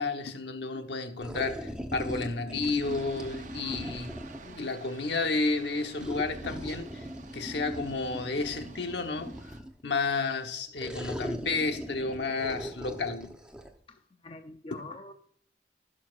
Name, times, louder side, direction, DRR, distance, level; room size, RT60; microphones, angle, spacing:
voice 1, 0.0-7.1 7.3-9.6 9.8-13.3 14.7-14.8, left 3 dB, 65° left, 1.1 m, -32 dB
sound 1, 1.2-4.6 6.0-9.8 10.8-13.7, equal, 5° right, 0.8 m, -40 dB
Aircraft, 2.8-9.6, right 3 dB, 40° right, 0.6 m, -50 dB
voice 2, 4.4-4.7 13.9-15.1, left 2 dB, 30° left, 0.5 m, -46 dB
16.5 x 6.5 x 2.4 m
head